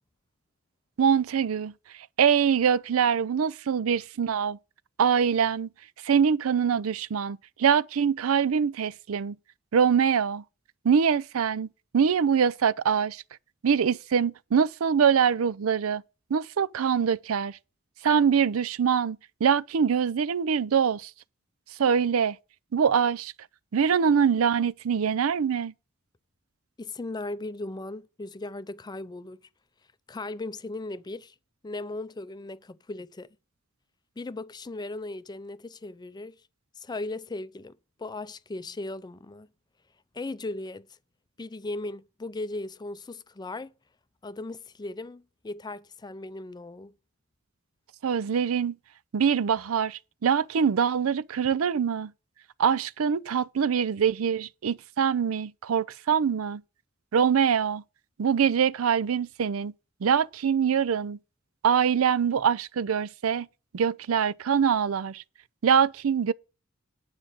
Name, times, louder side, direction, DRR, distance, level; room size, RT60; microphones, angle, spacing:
voice 1, 1.0-1.7 2.2-4.6 5.0-5.7 6.0-9.4 9.7-10.4 10.8-11.7 11.9-13.2 13.6-16.0 16.3-17.6 18.0-21.1 21.8-22.4 22.7-23.3 23.7-25.7 48.0-48.8 49.1-52.1 52.6-56.6 57.1-57.8 58.2-59.7 60.0-61.2 61.6-63.5 63.7-65.2 65.6-66.3, right 7 dB, 85° right, 0.5 m, -24 dB
voice 2, 26.8-29.4 30.1-31.3 31.6-33.3 34.2-36.4 36.8-39.5 40.1-40.9 41.4-43.7 44.2-46.9, left 2 dB, 20° left, 0.4 m, -37 dB
9.8 x 5.1 x 7.4 m
head